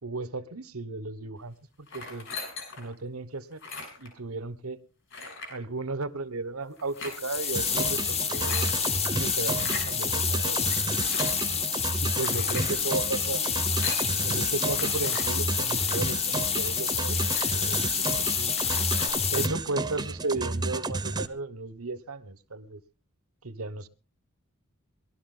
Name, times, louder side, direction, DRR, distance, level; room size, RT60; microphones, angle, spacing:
voice 1, 0.0-2.3 2.8-3.6 4.0-4.8 5.5-8.8 9.1-10.6 12.0-13.4 14.2-18.5 19.3-22.8 23.4-23.9, right 3 dB, 85° right, 1.2 m, -35 dB
sound 1, 1.9-2.9 3.5-4.1 5.1-5.6 6.8-7.2 8.1-8.7 9.5-9.9 10.7-11.4 12.1-12.8 13.6-14.1 14.8-15.3 15.8-16.1 16.6-16.7 17.0-17.8 18.2-18.3 18.5-19.1, left 4 dB, 60° left, 6.6 m, -39 dB
sound 2, 7.0-19.5, left 7 dB, 30° left, 1.0 m, -28 dB
sound 3, 7.6-21.3, right 3 dB, 20° right, 0.9 m, -32 dB
20.5 x 12.5 x 3.8 m
head